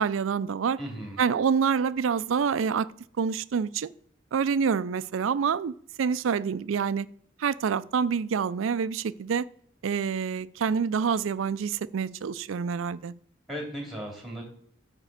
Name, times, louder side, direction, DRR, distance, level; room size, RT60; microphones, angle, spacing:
voice 1, 0.0-0.8 1.2-2.9 3.2-3.9 4.3-7.1 7.4-9.5 9.8-13.1, right 6 dB, 90° right, 0.4 m, -27 dB
voice 2, 0.8-1.2 13.5-14.4, equal, ahead, 2.6 m, -36 dB
9.0 x 3.6 x 6.6 m
head